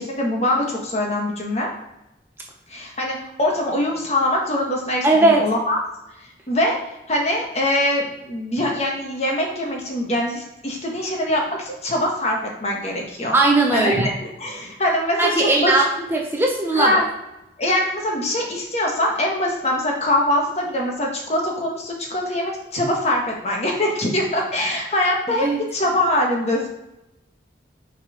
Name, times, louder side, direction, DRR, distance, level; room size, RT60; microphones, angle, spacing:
voice 1, 0.0-1.7 2.7-5.8 6.5-6.8 7.1-13.3 13.7-14.0 14.2-15.8 16.7-17.0 17.6-26.7, left 1 dB, 35° left, -1 dB, 1.4 m, -23 dB
voice 2, 5.0-5.4 13.3-14.1 15.2-17.0 25.3-25.6, right 2 dB, 15° right, 0 dB, 0.8 m, -18 dB
6.5 x 4.1 x 5.0 m, 0.92 s
head